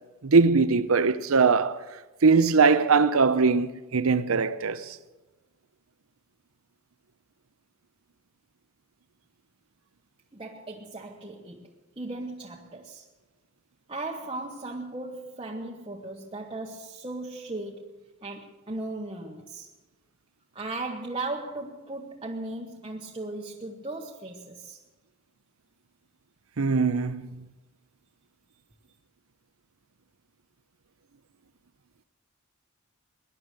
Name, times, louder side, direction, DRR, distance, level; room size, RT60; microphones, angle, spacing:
voice 1, 0.2-1.8 2.2-4.8 26.6-27.3, right 4 dB, 80° right, 0.7 m, -21 dB
voice 2, 10.3-13.0 13.9-19.7 20.5-24.8, right 2 dB, 25° right, 1.1 m, -37 dB
20.5 x 10.5 x 6.6 m
head